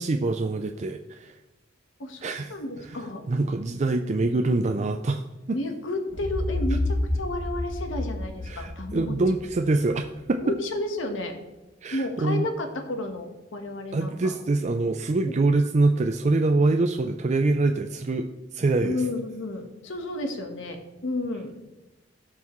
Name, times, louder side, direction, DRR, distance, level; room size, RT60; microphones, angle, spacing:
voice 1, 0.0-1.3 2.2-2.5 3.3-5.2 5.5-5.6 8.5-10.4 11.8-12.5 13.9-18.2 18.5-19.0, right 2 dB, 35° right, 5 dB, 0.4 m, -24 dB
voice 2, 2.0-3.3 5.5-9.1 10.4-11.3 11.9-14.3 15.3-15.4 18.8-21.5, left 2 dB, 80° left, 4 dB, 1.3 m, -32 dB
sound 1, 6.1-10.0, left 1 dB, 60° left, 3.0 m, -30 dB
17.0 x 5.8 x 3.1 m, 1.1 s
head